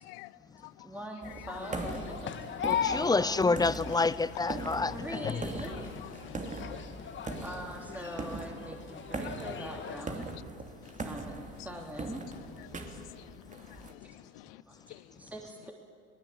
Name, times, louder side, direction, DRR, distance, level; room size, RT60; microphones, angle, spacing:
voice 1, 0.0-0.9 1.2-1.6 3.3-3.5 5.6-6.8 9.8-10.4 10.7-11.0 11.6-11.8 12.2-15.3, left 19 dB, 75° left, 0.6 m, -50 dB
voice 2, 0.8-3.6 4.9-5.9 7.4-10.3 11.0-12.2 14.0-14.1 14.7-14.8 15.2-15.7, right 1 dB, 5° right, 3.2 m, -43 dB
sound 1, 1.2-13.9, right 3 dB, 25° right, 2.7 m, -41 dB
sound 2, 1.5-10.1, left 8 dB, 40° left, 1.9 m, -38 dB
voice 3, 2.6-4.9, left 3 dB, 15° left, 0.6 m, -27 dB
21.5 x 19.0 x 8.6 m
hypercardioid pair, 80°, 30 cm